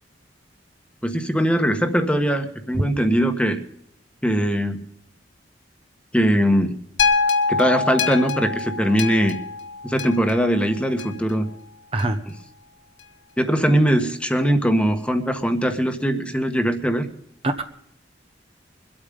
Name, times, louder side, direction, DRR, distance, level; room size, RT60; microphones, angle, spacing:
voice 1, 1.0-3.6 4.2-4.8 6.1-6.7 7.5-9.4 9.8-11.5 12.3-12.4 13.4-17.1, equal, 5° left, 7 dB, 1.4 m, -21 dB
voice 2, 2.7-2.9 11.9-12.2 17.4-17.6, right 2 dB, 30° right, 7 dB, 0.9 m, -22 dB
sound 1, 7.0-11.3 12.0-12.1, left 4 dB, 90° left, 1.8 m, -25 dB
24.0 x 8.7 x 5.3 m, 0.70 s
head